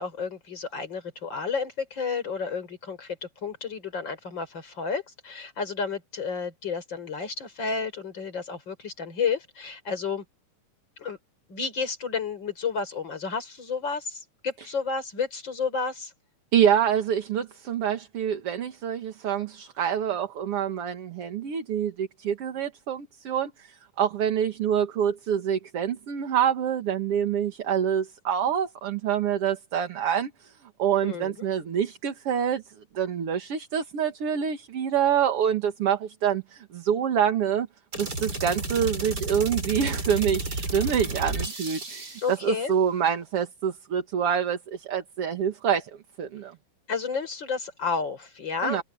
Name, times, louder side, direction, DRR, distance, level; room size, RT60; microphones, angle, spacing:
voice 1, 0.0-10.2 11.0-11.2 11.5-16.1 31.0-31.5 42.2-42.7 46.9-48.8, left 5 dB, 35° left, 5.1 m, -31 dB
voice 2, 16.5-30.5 30.8-32.6 32.9-37.7 38.0-45.9 46.2-46.5 48.6-48.8, right 8 dB, 50° right, 2.4 m, -26 dB
sound 1, 37.9-42.4, right 2 dB, 30° right, 4.8 m, -32 dB
omnidirectional pair, 3.6 m